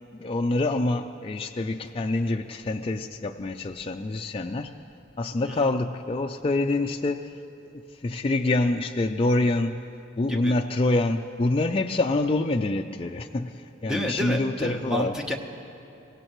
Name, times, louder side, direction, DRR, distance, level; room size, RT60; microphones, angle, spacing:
voice 1, 0.1-4.8 5.2-7.3 7.7-9.8 10.2-15.1, left 2 dB, 25° left, 4 dB, 0.3 m, -26 dB
voice 2, 13.9-15.4, equal, 5° right, 2 dB, 0.9 m, -30 dB
24.5 x 17.0 x 3.1 m, 2.9 s
head